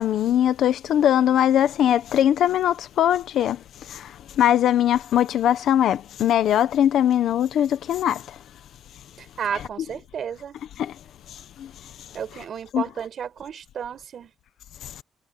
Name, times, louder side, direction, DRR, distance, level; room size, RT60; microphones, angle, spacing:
voice 1, 0.0-8.4 9.5-9.6 10.8-11.0 11.3-11.7 12.7-12.8 14.8-15.0, left 10 dB, 70° left, 1.3 m, -21 dB
voice 2, 9.2-10.6 12.1-14.3, right 8 dB, 55° right, 5.8 m, -32 dB
cardioid pair, 110°, 0 cm